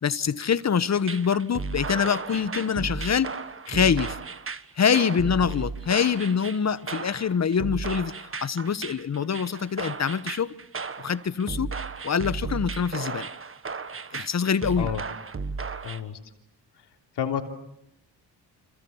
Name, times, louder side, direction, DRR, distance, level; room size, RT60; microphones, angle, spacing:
voice 1, 0.0-3.3 3.7-4.2 4.8-10.6 11.0-11.7 12.0-13.3 14.1-14.9, left 7 dB, 40° left, 1.2 m, -25 dB
sound 1, 0.9-16.0, right 4 dB, 30° right, 1.6 m, -34 dB
voice 2, 15.8-16.2 17.1-17.4, left 8 dB, 80° left, 3.3 m, -29 dB
29.0 x 27.0 x 7.2 m
cardioid pair, 80°, 40 cm